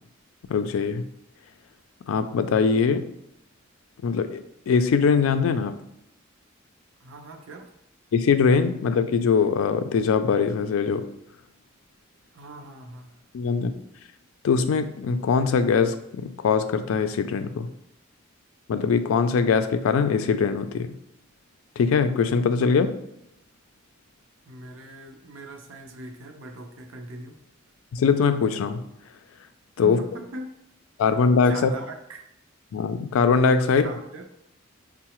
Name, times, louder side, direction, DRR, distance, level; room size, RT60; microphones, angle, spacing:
voice 1, 0.5-1.0 2.1-3.1 4.0-5.7 8.1-11.1 13.3-13.7 14.4-17.7 18.7-20.9 21.8-22.9 27.9-28.8 29.8-30.0 31.0-31.7 32.7-33.9, left 5 dB, 85° left, 10 dB, 0.3 m, -22 dB
voice 2, 7.0-7.8 12.3-13.2 24.5-27.4 29.8-30.5 31.0-31.2 31.5-32.2 33.6-34.2, right 2 dB, 75° right, 4 dB, 0.5 m, -40 dB
5.4 x 2.0 x 2.9 m, 0.80 s
head